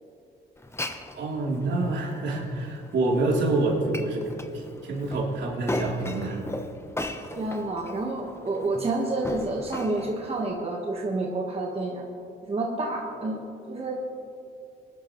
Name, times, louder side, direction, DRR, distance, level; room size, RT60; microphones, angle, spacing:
Glass, 0.6-10.5, left 1 dB, 15° left, 0.9 m, -38 dB
voice 1, 1.2-4.3 4.5-6.4, right 2 dB, 65° right, -3 dB, 3.5 m, -27 dB
voice 2, 7.4-12.0 12.5-14.0, right 2 dB, 30° right, -1 dB, 1.4 m, -29 dB
21.0 x 11.5 x 3.2 m, 2.8 s
cardioid pair, 90°, 20 cm